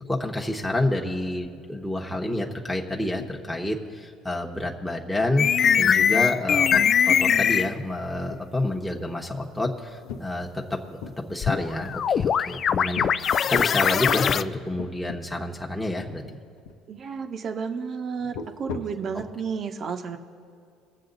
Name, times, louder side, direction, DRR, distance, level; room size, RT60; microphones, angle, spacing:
voice 1, 0.1-5.5 5.8-16.4, left 1 dB, 5° left, -1 dB, 1.2 m, -29 dB
sound 1, 3.2-3.7 4.0-4.1 4.5-4.7 5.1-5.3 5.7-7.9 8.2-8.9 9.3-11.2 11.9-12.5 12.9-13.1 13.5-13.8 14.4-14.5 14.8-15.2 15.5-15.6 16.2-16.8 18.2-19.1, left 5 dB, 85° left, 0.8 m, -39 dB
sound 2, 5.4-7.7 11.4-14.4, left 8 dB, 45° left, 0.4 m, -21 dB
voice 2, 16.9-20.2, right 6 dB, 50° right, 6 dB, 1.0 m, -32 dB
22.0 x 7.6 x 4.0 m, 2.4 s
supercardioid pair, 85°, 0 cm